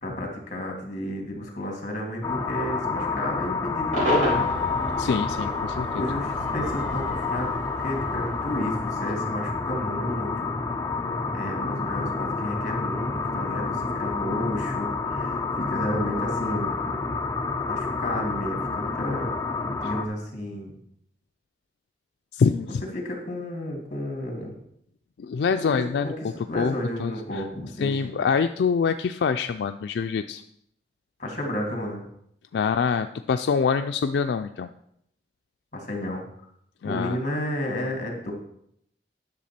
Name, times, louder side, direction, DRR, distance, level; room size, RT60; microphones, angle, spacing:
voice 1, 0.0-4.5 5.9-7.5 7.8-10.5 11.3-16.9 17.7-19.3 19.7-20.7 22.9-24.6 25.6-28.2 31.2-32.1 35.7-36.2 36.8-38.3, left 1 dB, 45° left, 2 dB, 2.3 m, -32 dB
sound 1, 2.2-20.1, left 4 dB, 20° left, 0.5 m, -29 dB
Cheering / Crowd / Fireworks, 3.9-9.2, equal, 45° right, 4.6 m, -31 dB
voice 2, 5.0-6.1 22.3-22.9 25.2-26.1 26.5-26.7 27.0-27.4 27.8-30.4 32.5-34.7 36.8-37.2, left 5 dB, 75° left, 8 dB, 0.3 m, -25 dB
10.5 x 6.6 x 4.2 m, 0.72 s
head